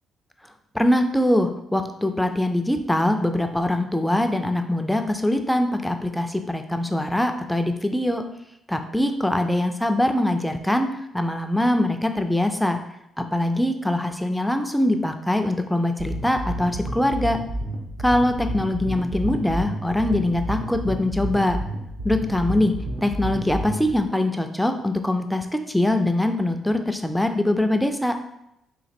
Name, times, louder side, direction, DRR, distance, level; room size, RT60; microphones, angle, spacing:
voice 1, 0.7-8.2 8.7-12.8 13.2-17.4 18.0-21.6 22.0-22.7 23.0-28.2, left 1 dB, 5° left, 6 dB, 0.4 m, -23 dB
sound 1, 16.0-24.0, right 1 dB, 60° right, 1.0 m, -30 dB
4.0 x 2.5 x 4.2 m, 0.82 s
cardioid pair, 90°, 0 cm